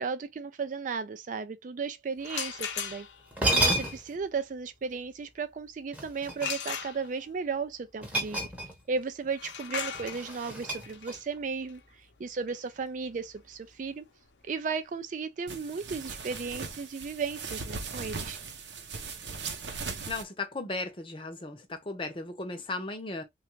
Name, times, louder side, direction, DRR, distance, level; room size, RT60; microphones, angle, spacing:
voice 1, 0.0-3.1 3.5-8.5 8.9-11.8 12.2-14.1 14.4-18.4, right 5 dB, 45° right, 0.4 m, -35 dB
sound 1, 2.2-3.4 6.4-7.4 9.3-15.0, left 7 dB, 80° left, 0.7 m, -39 dB
sound 2, 2.9-3.0 3.3-4.2 5.9-6.8 8.0-9.0 9.2-9.5 9.9-11.4, right 1 dB, 10° right, 0.8 m, -30 dB
sound 3, 15.5-20.2, right 4 dB, 75° right, 0.7 m, -39 dB
voice 2, 20.1-23.2, left 3 dB, 30° left, 0.7 m, -36 dB
3.3 x 2.4 x 3.0 m
head